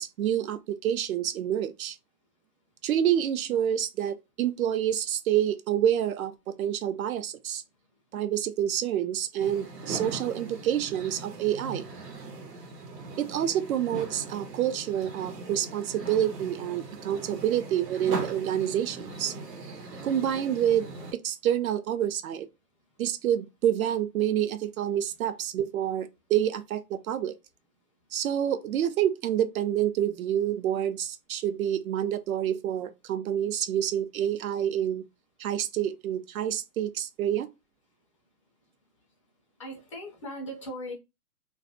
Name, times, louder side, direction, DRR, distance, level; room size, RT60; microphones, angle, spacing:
voice 1, 0.0-2.0 2.8-7.6 8.1-11.9 13.2-19.3 20.0-20.9 21.2-22.5 23.0-27.3 28.1-35.0 35.4-37.5, right 10 dB, 60° right, 0.5 m, -28 dB
sound 1, 9.4-21.1, right 3 dB, 85° right, 1.0 m, -40 dB
voice 2, 39.6-40.9, equal, 20° left, 0.4 m, -38 dB
2.3 x 2.1 x 2.6 m
hypercardioid pair, 135°, 48 cm